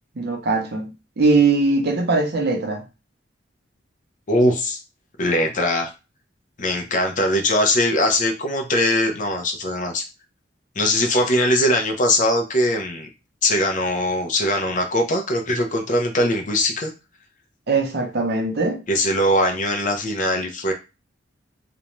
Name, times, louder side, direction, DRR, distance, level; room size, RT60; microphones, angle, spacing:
voice 1, 0.2-2.8 17.7-18.8, right 3 dB, 60° right, 0.6 m, -21 dB
voice 2, 4.3-4.8 5.2-5.9 6.6-10.0 10.8-13.1 13.4-16.9 18.9-20.7, left 1 dB, 45° left, 0.5 m, -21 dB
2.5 x 2.1 x 2.9 m
head